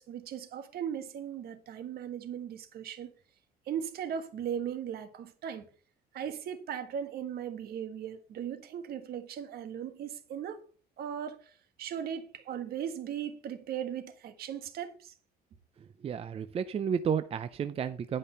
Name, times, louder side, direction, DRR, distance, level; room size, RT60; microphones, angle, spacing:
voice 1, 0.0-3.1 3.7-5.7 6.1-10.6 11.0-15.1, right 9 dB, 65° right, 1.5 m, -38 dB
voice 2, 16.0-18.2, right 7 dB, 35° right, 0.5 m, -32 dB
10.5 x 5.3 x 5.6 m
cardioid pair, 110°, 17 cm